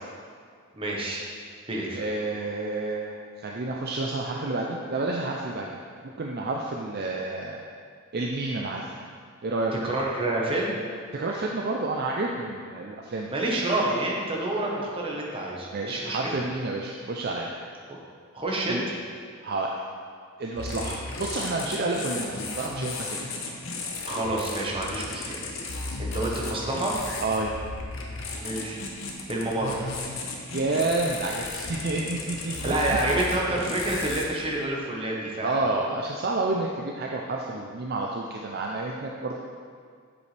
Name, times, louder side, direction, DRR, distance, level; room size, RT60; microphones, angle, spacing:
voice 1, 0.7-1.2 1.7-2.0 9.8-10.7 13.3-16.3 17.9-18.0 18.3-18.8 24.0-25.4 26.0-27.0 28.4-28.8 29.3-29.9 32.6-35.5, right 1 dB, 25° right, -3 dB, 1.1 m, -28 dB
voice 2, 1.9-5.7 6.2-7.6 8.1-8.9 9.4-9.7 11.1-13.3 15.7-17.5 18.7-18.8 19.4-19.8 20.4-23.1 27.2-27.6 30.5-33.2 35.4-39.4, right 2 dB, 45° right, -1 dB, 0.4 m, -29 dB
sound 1, 20.5-34.3, left 3 dB, 60° left, 0.9 m, -35 dB
8.1 x 6.8 x 3.3 m, 2.1 s
head